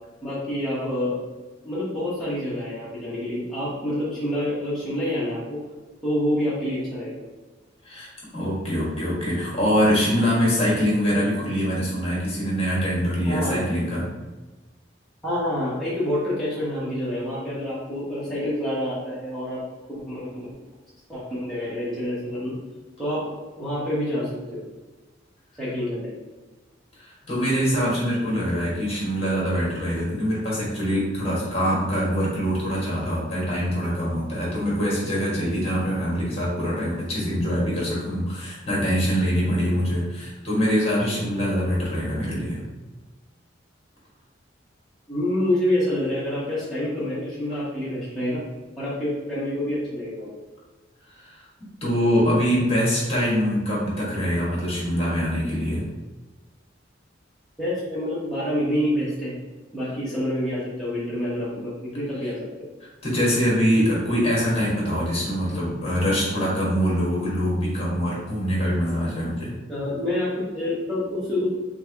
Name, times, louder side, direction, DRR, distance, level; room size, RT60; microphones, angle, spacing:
voice 1, 0.2-1.2 1.6-5.6 6.0-7.2 13.2-13.7 15.2-19.6 19.9-20.5 21.1-22.5 23.0-23.3 23.6-24.6 25.6-26.1 45.1-48.4 48.8-50.4 57.6-59.3 59.7-62.7 69.7-71.5, left 1 dB, ahead, -11 dB, 1.0 m, -27 dB
voice 2, 7.8-14.1 27.0-42.6 51.1-51.4 51.8-55.8 62.2-62.3 63.0-69.5, equal, 30° left, -5 dB, 1.4 m, -24 dB
3.6 x 3.4 x 3.4 m, 1.2 s
head